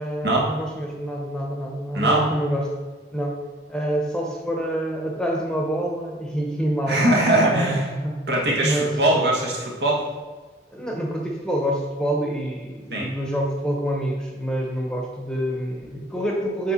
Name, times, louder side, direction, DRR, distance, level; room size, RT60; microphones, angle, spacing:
voice 1, 0.0-2.7 3.1-3.4 3.7-7.0 7.5-8.2 8.6-8.9 10.7-16.7, right 1 dB, 5° left, -1 dB, 0.9 m, -26 dB
voice 2, 1.9-2.3 6.9-7.9 8.3-10.0 12.9-13.1, right 1 dB, 70° right, -2 dB, 1.5 m, -21 dB
7.3 x 4.5 x 4.3 m, 1.4 s
head